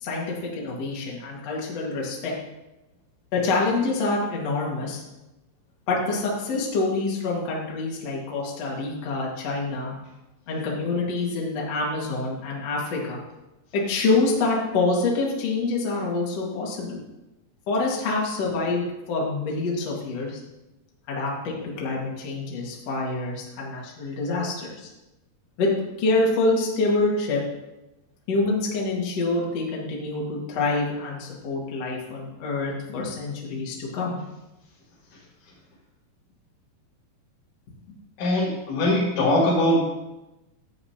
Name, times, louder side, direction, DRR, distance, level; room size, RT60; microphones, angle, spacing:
voice 1, 0.0-2.3 3.3-5.0 5.9-10.0 10.5-13.2 13.7-17.0 17.7-20.4 21.1-24.9 25.6-25.7 26.0-27.4 28.3-34.2, left 3 dB, 50° left, -3 dB, 2.3 m, -26 dB
voice 2, 38.2-39.8, left 1 dB, 85° left, -6 dB, 4.6 m, -21 dB
13.5 x 8.5 x 2.9 m, 0.99 s
omnidirectional pair, 5.1 m